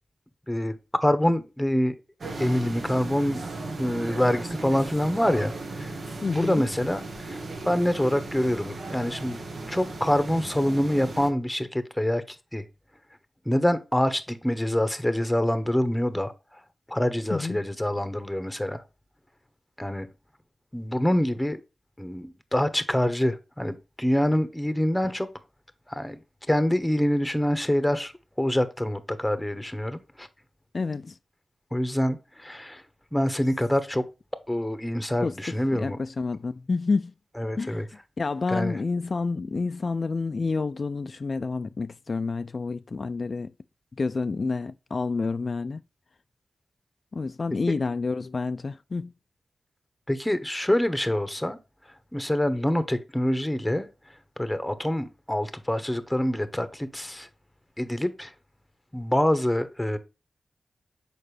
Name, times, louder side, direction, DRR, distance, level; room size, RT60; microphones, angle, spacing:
voice 1, 0.5-2.0 2.4-3.4 3.8-5.9 6.3-9.4 9.7-12.6 13.4-16.3 16.9-18.8 19.8-20.1 20.7-21.6 22.0-25.3 25.9-26.2 26.5-28.1 28.4-30.3 31.7-32.8 33.1-34.1 34.5-36.0 37.4-37.9 38.5-38.8 47.7-47.8 50.1-51.6 52.1-53.9 54.4-57.3 57.8-58.3 58.9-60.0, left 1 dB, 10° left, 1.0 m, -26 dB
sound 1, 2.2-11.3, right 2 dB, 65° right, 1.3 m, -36 dB
voice 2, 6.2-6.6 17.3-17.6 30.7-31.2 35.2-35.3 35.7-37.1 37.6-37.9 38.2-43.5 44.0-45.8 47.1-49.1, left 4 dB, 50° left, 0.3 m, -29 dB
6.6 x 5.0 x 3.3 m
cardioid pair, 65°, 0 cm